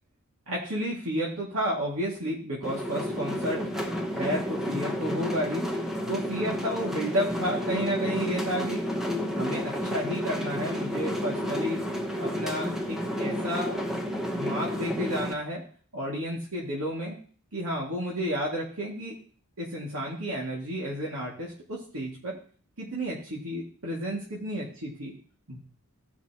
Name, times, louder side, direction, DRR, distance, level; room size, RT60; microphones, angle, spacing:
voice 1, 0.5-3.6 4.1-5.6 6.1-8.9 9.3-11.8 12.2-13.7 14.3-15.6 15.9-17.2 17.5-19.1 19.6-22.4 22.8-25.1 25.5-25.6, equal, 70° right, -5 dB, 2.3 m, -31 dB
sound 1, 2.6-15.3, equal, ahead, 1.0 m, -31 dB
16.0 x 5.9 x 3.0 m, 0.43 s
head